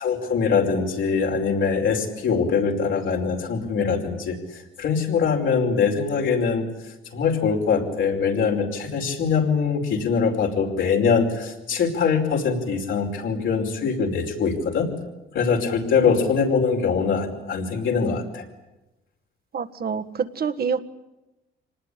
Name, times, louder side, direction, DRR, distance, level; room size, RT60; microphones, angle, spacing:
voice 1, 0.0-6.7 7.1-14.9 15.3-18.4, left 5 dB, 75° left, 0 dB, 5.0 m, -23 dB
voice 2, 19.5-20.8, right 6 dB, 50° right, 9 dB, 1.6 m, -27 dB
25.5 x 19.5 x 9.9 m, 0.99 s
cardioid pair, 90°, 20 cm